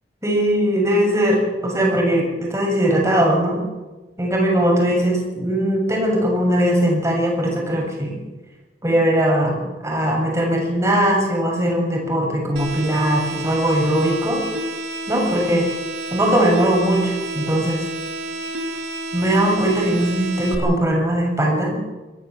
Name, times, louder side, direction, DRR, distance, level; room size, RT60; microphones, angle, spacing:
voice 1, 0.2-3.6 4.2-8.2 8.8-9.6 9.8-14.4 15.1-15.7 16.1-17.8 19.1-21.8, right 1 dB, 15° right, -1 dB, 7.3 m, -20 dB
sound 1, 12.6-20.6, right 2 dB, 85° right, 4.2 m, -30 dB
23.5 x 17.0 x 7.7 m, 1.2 s
head